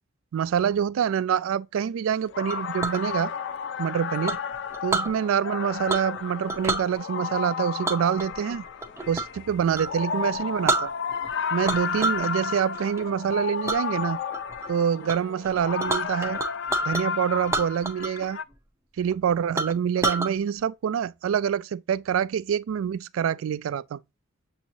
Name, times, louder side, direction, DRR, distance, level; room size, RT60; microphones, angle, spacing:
voice 1, 0.3-3.3 3.8-4.4 4.8-8.6 9.1-10.9 11.5-14.2 14.7-16.4 16.8-18.4 19.0-24.0, right 8 dB, 75° right, 0.3 m, -26 dB
sound 1, 2.2-18.4, left 6 dB, 60° left, 0.4 m, -32 dB
Chink clink, 2.5-3.0 4.3-5.1 5.9-6.2 6.5-6.9 7.8-9.4 9.7-9.9 10.3-10.4 10.7-11.3 11.6-12.3 12.7-13.0 13.7-13.8 14.3-14.7 15.1-15.2 15.4-17.0 17.4-18.3 18.5-18.6 19.1-19.2 19.6-20.3, right 3 dB, 15° right, 0.5 m, -28 dB
7.0 x 2.9 x 2.6 m
head